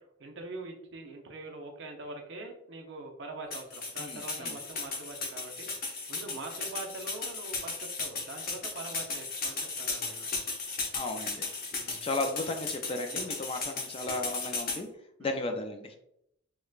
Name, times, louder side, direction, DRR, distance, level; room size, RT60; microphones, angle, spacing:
voice 1, 0.0-10.3 11.7-12.0 15.2-15.5, right 2 dB, 60° right, 2 dB, 0.6 m, -43 dB
sound 1, 3.5-14.8, left 3 dB, 45° left, 0.7 m, -36 dB
voice 2, 4.0-4.5 10.9-11.5 11.9-14.9 15.2-16.0, left 2 dB, 30° left, 5 dB, 0.3 m, -35 dB
4.7 x 2.2 x 2.3 m, 0.76 s
head